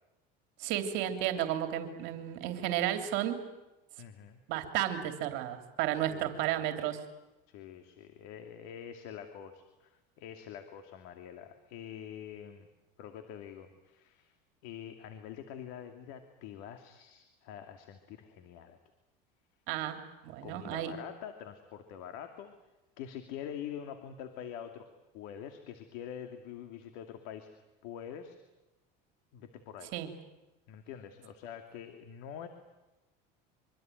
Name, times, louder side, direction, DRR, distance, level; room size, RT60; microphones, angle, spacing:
voice 1, 0.6-3.4 4.5-7.0 19.7-21.0 29.9-30.1, right 12 dB, 65° right, 6 dB, 3.1 m, -33 dB
voice 2, 4.0-4.4 5.9-6.6 7.5-12.7 13.0-14.3 14.6-18.8 20.4-22.5 23.0-24.9 25.1-27.5 27.8-28.4 29.3-29.9 30.7-32.5, left 9 dB, 75° left, 7 dB, 2.7 m, -45 dB
25.5 x 24.5 x 9.3 m, 1.0 s
cardioid pair, 135°, 20 cm